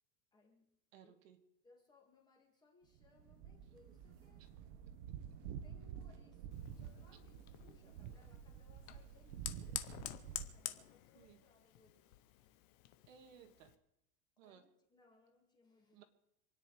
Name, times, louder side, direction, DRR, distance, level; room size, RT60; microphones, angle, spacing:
voice 1, 0.3-0.7 1.0-1.2 1.6-4.5 5.6-12.0 14.4-16.0, left 3 dB, 10° left, 0 dB, 2.1 m, -69 dB
voice 2, 0.9-1.4 4.4-4.5 4.9-5.0 11.1-11.5 13.1-13.8 14.4-14.7 15.9-16.0, right 8 dB, 55° right, 7 dB, 1.9 m, -61 dB
sound 1, 3.0-10.5, right 9 dB, 30° right, 1.0 m, -50 dB
Fire, 6.5-13.8, left 14 dB, 30° left, 0.7 m, -50 dB
27.0 x 9.9 x 4.9 m, 0.84 s
supercardioid pair, 175°, 46 cm